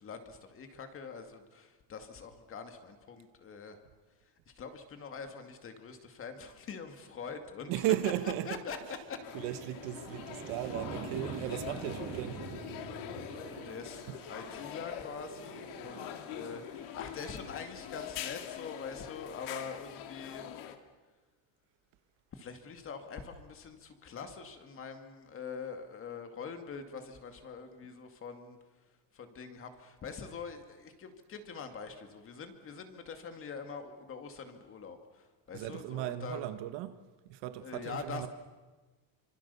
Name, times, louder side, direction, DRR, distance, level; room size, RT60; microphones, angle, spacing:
voice 1, 0.0-3.8 4.6-7.7 8.2-8.8 9.1-9.2 13.6-14.0 14.3-20.5 22.3-28.6 29.1-36.4 37.6-38.3, left 5 dB, 30° left, 2.3 m, -44 dB
sound 1, 7.4-7.5 8.0-18.7, right 6 dB, 35° right, 3.0 m, -47 dB
voice 2, 7.7-9.0 9.3-12.4 13.3-13.4 14.1-14.2 15.9-16.1 35.5-37.0 37.3-38.3, right 13 dB, 65° right, 1.5 m, -36 dB
sound 2, 9.2-20.8, left 10 dB, 85° left, 2.4 m, -44 dB
27.5 x 25.5 x 7.0 m
cardioid pair, 175°, 46 cm